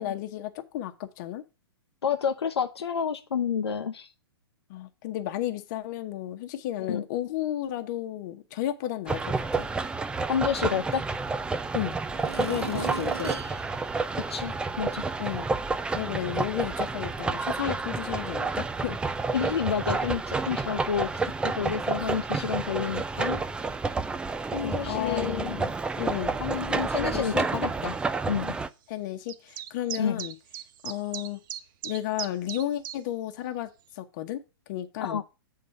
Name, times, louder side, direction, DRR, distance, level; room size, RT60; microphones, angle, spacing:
voice 1, 0.0-1.4 4.7-9.7 11.7-12.0 12.3-13.3 15.2-15.5 15.9-19.0 24.6-26.4 27.0-27.5 28.9-30.3 30.8-31.4 31.8-34.4 34.7-35.2, left 13 dB, 45° left, 1.0 m, -33 dB
voice 2, 2.0-4.1 6.9-7.0 10.3-11.0 12.7-12.9 14.3-15.0 19.3-23.4 24.5-25.6 26.4-28.0 28.3-28.5 30.0-30.2 35.0-35.2, left 7 dB, 80° left, 0.7 m, -29 dB
sound 1, 9.1-28.7, right 4 dB, 5° right, 0.3 m, -30 dB
sound 2, 12.1-14.9 15.4-15.5, right 5 dB, 85° right, 0.9 m, -38 dB
sound 3, 29.3-33.0, right 10 dB, 50° right, 0.6 m, -38 dB
7.7 x 3.8 x 6.5 m
hypercardioid pair, 115°, 13 cm